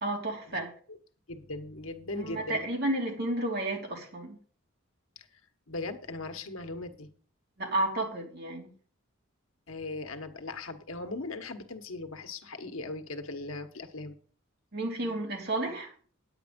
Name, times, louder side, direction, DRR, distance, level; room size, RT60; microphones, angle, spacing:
voice 1, 0.0-0.7 2.1-4.4 7.6-8.7 14.7-15.9, right 1 dB, 50° right, 3.0 m, -32 dB
voice 2, 1.3-2.7 5.2-5.3 5.7-7.1 9.7-14.1, left 2 dB, 75° left, 1.3 m, -39 dB
9.7 x 9.0 x 5.2 m
head